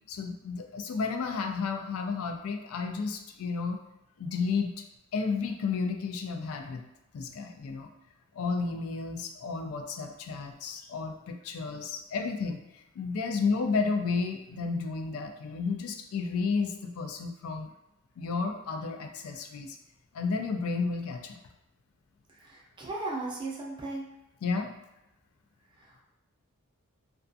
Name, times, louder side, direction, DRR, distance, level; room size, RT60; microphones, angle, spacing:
voice 1, 0.1-3.8 4.2-4.7 5.1-6.8 7.1-7.9 8.3-17.7 18.2-19.8 20.1-21.4 24.4-24.7, left 4 dB, 65° left, 5 dB, 0.3 m, -32 dB
voice 2, 22.3-24.1 25.8-26.0, right 2 dB, 20° right, -3 dB, 0.5 m, -37 dB
2.3 x 2.3 x 2.6 m, 0.91 s
head